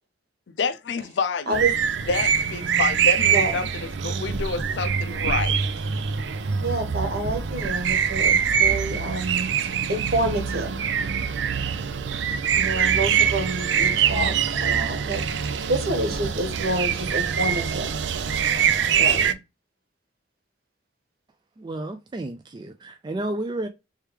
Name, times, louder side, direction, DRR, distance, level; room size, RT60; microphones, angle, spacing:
voice 1, 0.6-1.7 2.1-5.6, left 4 dB, 80° left, 0.5 m, -28 dB
sound 1, 1.5-19.3, right 7 dB, 90° right, 0.5 m, -24 dB
voice 2, 6.6-10.7 12.5-17.9 18.9-19.4, right 2 dB, 60° right, 1.3 m, -28 dB
voice 3, 21.6-23.7, right 1 dB, 25° right, 0.4 m, -31 dB
3.3 x 3.3 x 3.2 m
head